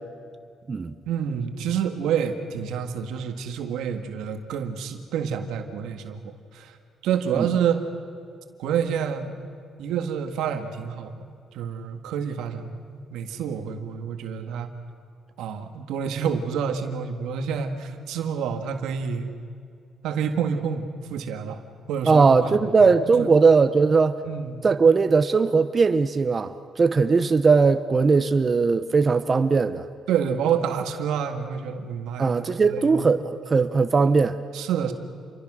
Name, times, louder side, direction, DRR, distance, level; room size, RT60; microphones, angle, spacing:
voice 1, 1.1-6.8 7.0-7.9 8.6-9.5 9.8-14.7 15.4-19.3 20.0-21.6 21.9-22.6 23.1-23.3 24.2-24.6 30.1-32.3 32.6-33.1 34.5-34.9, right 7 dB, 90° right, 6 dB, 1.8 m, -28 dB
voice 2, 22.1-24.2 24.6-29.8 32.2-34.4, right 4 dB, 35° right, 10 dB, 0.9 m, -19 dB
28.5 x 23.5 x 6.4 m, 2.2 s
cardioid pair, 90°, 0 cm